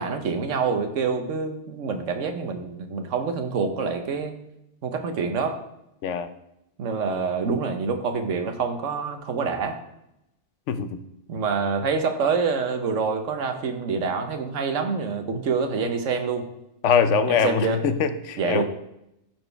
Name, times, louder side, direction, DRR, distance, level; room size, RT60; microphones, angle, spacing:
voice 1, 0.0-4.4 4.8-5.6 6.8-9.8 11.3-16.5 17.3-17.8 18.4-18.6, right 5 dB, 80° right, 6 dB, 1.2 m, -26 dB
voice 2, 10.7-11.0 16.8-18.6, left 6 dB, 75° left, 10 dB, 0.9 m, -23 dB
13.0 x 4.5 x 3.3 m, 0.85 s
omnidirectional pair, 1.3 m